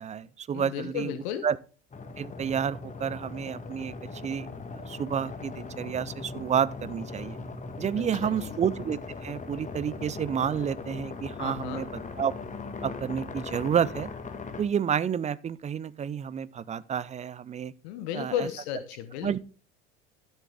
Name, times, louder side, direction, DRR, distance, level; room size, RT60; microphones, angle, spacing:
voice 1, 0.0-1.1 1.4-1.6 2.2-7.4 7.8-12.3 12.8-14.1 14.6-17.7 18.1-18.5 19.2-19.4, right 8 dB, 20° right, 0.5 m, -30 dB
voice 2, 0.5-1.5 7.9-8.6 11.4-11.8 17.8-19.4, left 9 dB, 65° left, 1.0 m, -34 dB
sound 1, 1.9-14.6, left 4 dB, 20° left, 1.7 m, -39 dB
12.5 x 7.2 x 3.6 m
hypercardioid pair, 70°, 35 cm